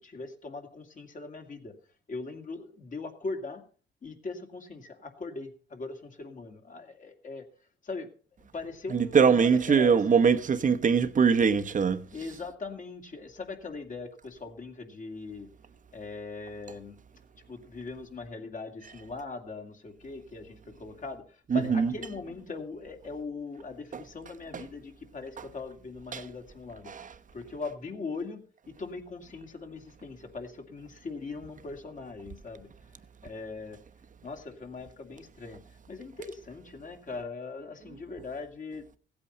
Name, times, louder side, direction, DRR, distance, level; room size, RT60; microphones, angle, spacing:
voice 1, 0.0-1.7 2.1-3.6 4.0-7.5 7.8-8.1 8.5-10.1 12.0-15.5 15.9-17.0 17.5-26.9 27.3-28.4 28.7-33.8 34.2-38.9, left 3 dB, 40° left, 2.5 m, -40 dB
voice 2, 8.9-12.0 21.5-21.9 26.1-26.2, right 6 dB, 40° right, 1.1 m, -22 dB
16.0 x 8.7 x 5.5 m
cardioid pair, 90°, 20 cm